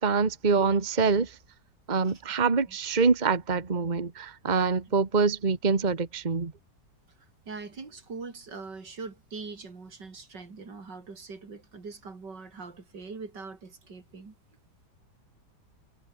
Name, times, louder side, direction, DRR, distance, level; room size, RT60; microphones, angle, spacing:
voice 1, 0.0-1.4 1.9-6.5, right 4 dB, 25° right, 1.7 m, -25 dB
voice 2, 7.5-14.4, right 4 dB, 80° right, 4.0 m, -42 dB
omnidirectional pair, 1.9 m